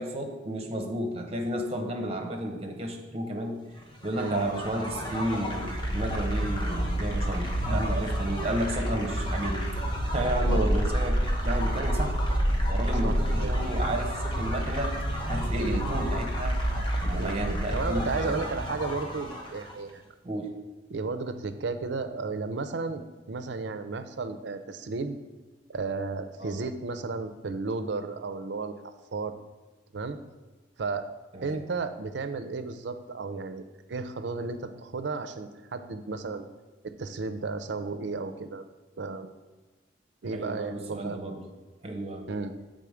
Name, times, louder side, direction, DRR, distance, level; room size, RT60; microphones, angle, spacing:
voice 1, 0.0-3.6 4.0-9.7 10.1-12.2 12.7-15.0 15.2-16.6 17.0-18.3 20.2-20.6 26.4-26.6 31.3-31.6 40.3-41.4 41.8-42.3, right 1 dB, 35° right, 3 dB, 0.9 m, -32 dB
sound 1, 4.0-19.7, equal, 25° left, 1.1 m, -29 dB
voice 2, 4.2-4.6 10.5-10.7 13.0-13.5 15.6-15.9 17.2-20.0 20.9-25.2 25.7-29.4 29.9-30.2 30.8-31.1 31.4-33.6 33.9-36.5 36.8-38.6 39.0-39.3 40.2-41.2 42.3-42.5, right 4 dB, 70° right, 9 dB, 0.5 m, -33 dB
6.9 x 3.8 x 4.9 m, 1.2 s
head